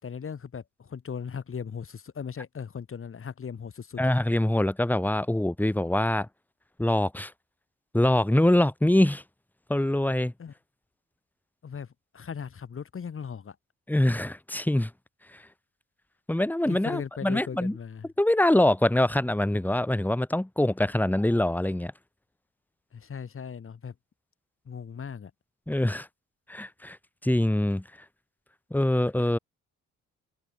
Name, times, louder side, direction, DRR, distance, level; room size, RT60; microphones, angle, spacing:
voice 1, 0.0-4.0 10.4-10.5 11.6-13.6 16.7-18.1 22.9-23.9 24.6-25.3, left 6 dB, 45° left, 6.7 m, -38 dB
voice 2, 4.0-6.3 6.8-7.3 7.9-9.2 9.7-10.3 13.9-14.9 15.3-15.4 16.3-17.8 18.2-21.9 25.7-26.1 26.5-27.0 27.2-27.8 28.7-29.4, left 1 dB, 5° left, 3.0 m, -24 dB
cardioid pair, 90°, 30 cm